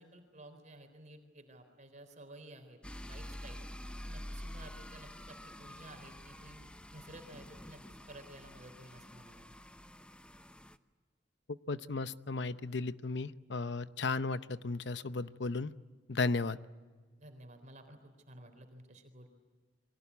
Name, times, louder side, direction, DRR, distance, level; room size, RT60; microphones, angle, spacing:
voice 1, 0.0-2.8 3.1-3.6 4.0-6.6 6.9-9.5 17.2-19.3, right 1 dB, 45° right, 6 dB, 3.8 m, -53 dB
sound 1, 2.8-10.8, equal, 5° left, 0.9 m, -48 dB
voice 2, 11.7-15.7 16.1-16.6, left 3 dB, 70° left, 13 dB, 0.8 m, -35 dB
29.5 x 23.0 x 8.4 m, 1.4 s
head